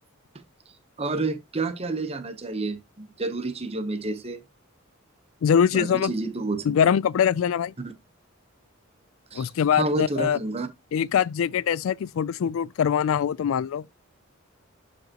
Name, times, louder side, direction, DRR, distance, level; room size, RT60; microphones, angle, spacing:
voice 1, 1.0-4.4 5.7-6.7 7.8-7.9 9.3-10.7, right 2 dB, 30° right, 0.9 m, -29 dB
voice 2, 5.4-6.1 6.7-7.7 9.3-10.4 10.9-13.8, left 8 dB, 75° left, 0.3 m, -23 dB
11.5 x 5.1 x 2.9 m
head